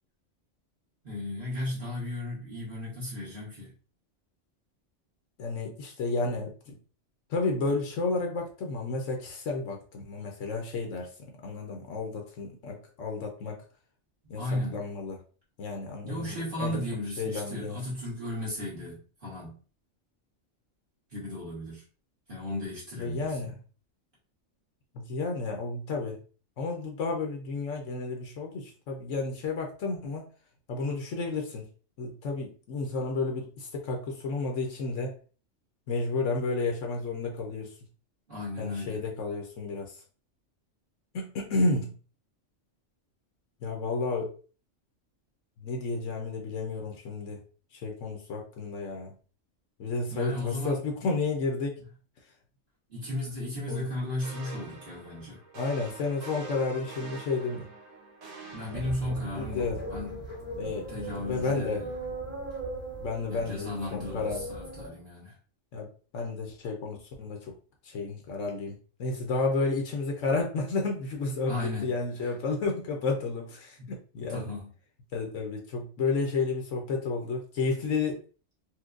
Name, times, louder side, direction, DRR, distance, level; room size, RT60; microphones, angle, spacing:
voice 1, 1.0-3.7 14.2-14.8 16.0-19.5 21.1-21.8 22.3-23.5 38.3-39.0 50.1-50.8 52.9-55.4 58.5-61.9 63.3-65.4 71.5-71.9 73.8-73.9 74.3-74.7, left 1 dB, 45° right, -7 dB, 1.5 m, -35 dB
voice 2, 5.4-6.8 7.3-11.1 11.4-13.6 14.3-14.4 14.7-15.2 15.6-16.8 17.2-17.8 23.0-23.5 24.9-26.2 26.6-30.3 30.7-31.6 32.0-35.2 35.9-37.7 38.6-40.0 41.1-41.9 43.6-44.3 45.6-47.4 47.7-49.1 49.8-51.8 53.7-53.9 55.5-57.7 58.6-59.8 60.6-60.9 61.2-61.8 63.0-64.4 65.7-67.5 67.8-74.5 75.1-78.2, left 3 dB, 75° left, 2 dB, 1.0 m, -31 dB
sound 1, 54.2-59.5, right 3 dB, 85° right, 1.2 m, -45 dB
sound 2, 58.7-64.9, right 2 dB, 25° right, 1.7 m, -39 dB
4.3 x 2.2 x 2.5 m, 0.38 s
omnidirectional pair, 1.3 m